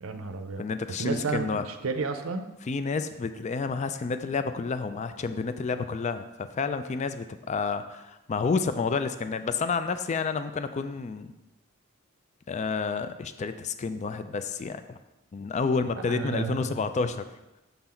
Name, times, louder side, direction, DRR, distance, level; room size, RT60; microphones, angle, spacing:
voice 1, 0.0-0.6 1.0-2.5 16.1-16.8, right 4 dB, 75° right, 8 dB, 0.6 m, -32 dB
voice 2, 0.6-1.7 2.7-11.3 12.5-14.8 15.3-17.2, left 4 dB, 35° left, 10 dB, 0.3 m, -30 dB
6.9 x 3.9 x 4.3 m, 1.0 s
head